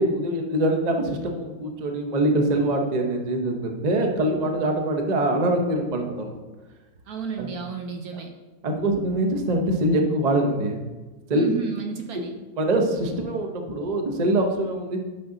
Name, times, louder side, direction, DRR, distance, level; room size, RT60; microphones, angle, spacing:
voice 1, 0.0-6.3 7.4-7.5 8.6-10.8 11.3-11.4 12.6-15.0, right 1 dB, 35° right, 3 dB, 0.7 m, -24 dB
voice 2, 7.1-8.3 11.3-12.3, right 6 dB, 65° right, 4 dB, 1.1 m, -31 dB
9.0 x 6.2 x 3.9 m, 1.2 s
omnidirectional pair, 1.9 m